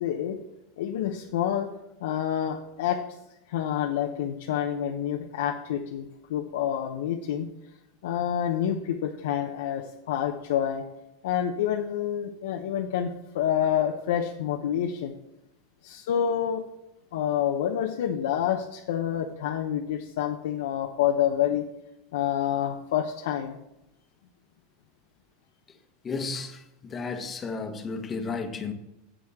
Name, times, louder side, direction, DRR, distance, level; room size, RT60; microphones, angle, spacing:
voice 1, 0.0-0.4 0.8-1.7 2.0-3.0 3.5-7.5 8.0-10.8 11.2-15.1 15.8-16.6 17.1-21.6 22.1-23.6, left 10 dB, 85° left, 0.8 m, -28 dB
voice 2, 26.0-28.7, left 4 dB, 20° left, 1.1 m, -33 dB
11.0 x 8.0 x 3.7 m
supercardioid pair, 150°, 0 cm